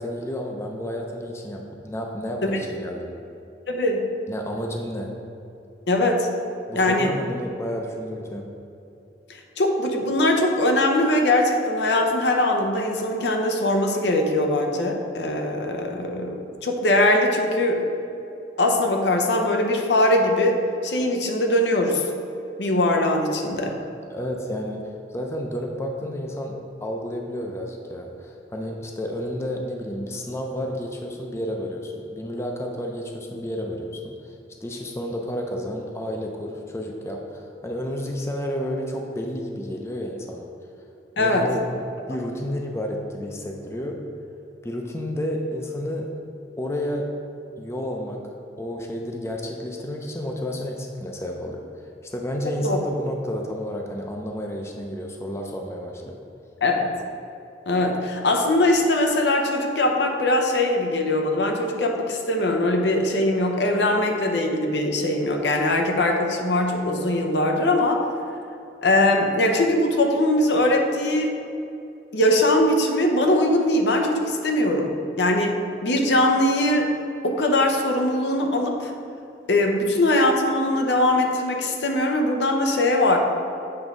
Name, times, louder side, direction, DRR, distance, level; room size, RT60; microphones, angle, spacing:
voice 1, 0.0-3.1 4.3-5.1 6.7-8.5 24.1-34.3 34.6-40.5 41.2-44.0 44.6-46.1 46.6-47.2 47.6-48.2 48.6-51.6 52.1-56.2, equal, 15° left, 1 dB, 0.5 m, -31 dB
voice 2, 3.7-4.1 5.9-6.3 6.7-7.1 9.6-17.9 18.6-22.0 22.6-23.8 41.2-41.5 52.6-52.8 56.6-57.0 57.7-68.0 68.8-71.3 72.1-76.9 77.2-78.9 79.5-83.2, left 1 dB, 75° left, 3 dB, 0.8 m, -21 dB
7.9 x 3.6 x 5.3 m, 2.7 s
head